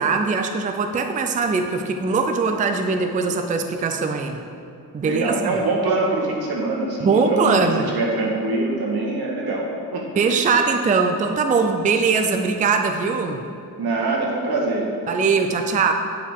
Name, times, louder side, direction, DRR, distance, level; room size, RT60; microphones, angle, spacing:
voice 1, 0.0-4.4 4.9-5.6 7.0-7.9 10.2-13.4 15.1-15.9, right 4 dB, 20° right, 6 dB, 0.4 m, -21 dB
voice 2, 5.0-7.7 7.9-9.6 9.9-10.0 13.8-14.9, right 2 dB, 85° right, -2 dB, 1.9 m, -23 dB
9.2 x 5.5 x 5.0 m, 2.6 s
wide cardioid pair, 155°, 37 cm